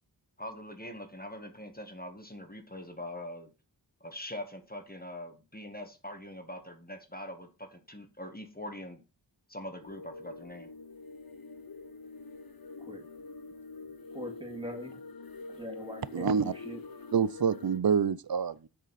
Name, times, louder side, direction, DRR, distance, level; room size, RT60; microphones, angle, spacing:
voice 1, 0.4-3.5 4.0-9.0 9.5-10.7, left 1 dB, 20° left, 1.5 m, -43 dB
sound 1, 9.8-17.8, left 3 dB, 55° left, 0.9 m, -46 dB
voice 2, 14.1-15.0 15.6-16.8, equal, 10° right, 2.3 m, -42 dB
voice 3, 16.1-16.5 17.1-18.7, right 6 dB, 60° right, 0.6 m, -27 dB
7.9 x 6.6 x 4.2 m
wide cardioid pair, 65°, 42 cm